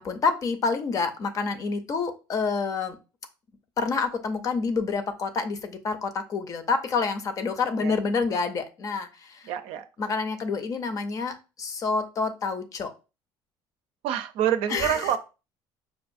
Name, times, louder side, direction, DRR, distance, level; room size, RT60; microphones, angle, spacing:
voice 1, 0.0-3.0 3.8-9.5 10.0-12.9 14.7-15.1, left 4 dB, 35° left, 8 dB, 0.6 m, -28 dB
voice 2, 9.5-9.9 14.0-15.2, right 10 dB, 80° right, 8 dB, 0.5 m, -26 dB
5.4 x 2.4 x 2.5 m, 0.30 s
cardioid pair, 145°, 9 cm